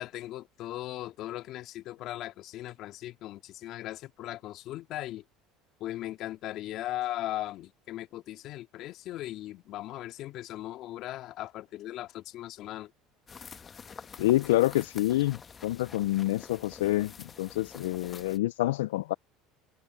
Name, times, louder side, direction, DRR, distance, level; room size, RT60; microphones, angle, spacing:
voice 1, 0.0-5.2 5.8-12.9, left 14 dB, 60° left, 2.2 m, -38 dB
sound 1, 13.3-18.4, left 6 dB, 30° left, 1.2 m, -48 dB
voice 2, 14.2-19.1, left 16 dB, 85° left, 0.4 m, -27 dB
hypercardioid pair, 80°, 0 cm